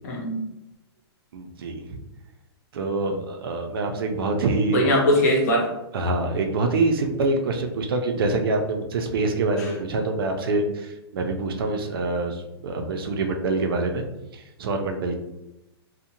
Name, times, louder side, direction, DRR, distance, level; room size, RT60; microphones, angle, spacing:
voice 1, 0.0-0.4 4.7-5.7 9.6-9.7, equal, 40° left, -1 dB, 0.6 m, -21 dB
voice 2, 1.3-2.0 2.7-4.8 5.9-14.0 14.3-15.1, right 3 dB, 60° right, 4 dB, 0.4 m, -25 dB
2.6 x 2.1 x 2.8 m, 0.93 s
hypercardioid pair, 170°, 14 cm